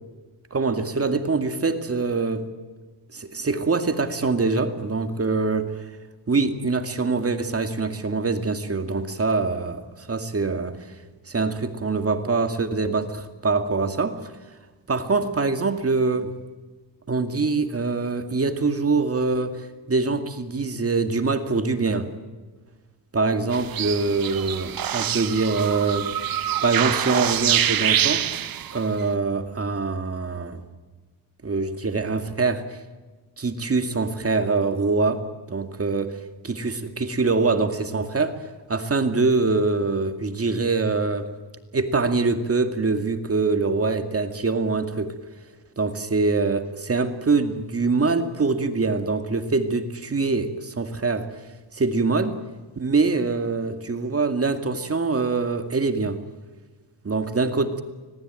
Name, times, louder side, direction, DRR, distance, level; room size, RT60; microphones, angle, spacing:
voice 1, 0.5-2.5 3.1-5.7 6.3-10.8 11.3-14.3 14.9-16.3 17.1-22.1 23.1-26.1 26.6-28.2 28.7-30.6 31.4-32.8 33.4-36.2 36.4-38.4 38.7-41.3 41.7-45.1 45.8-51.3 51.7-52.4 52.8-56.2 57.0-57.8, right 3 dB, 30° right, 8 dB, 2.3 m, -24 dB
sound 1, 23.5-28.9, right 10 dB, 50° right, 1.0 m, -25 dB
25.0 x 19.0 x 9.1 m, 1.3 s
cardioid pair, 80°, 45 cm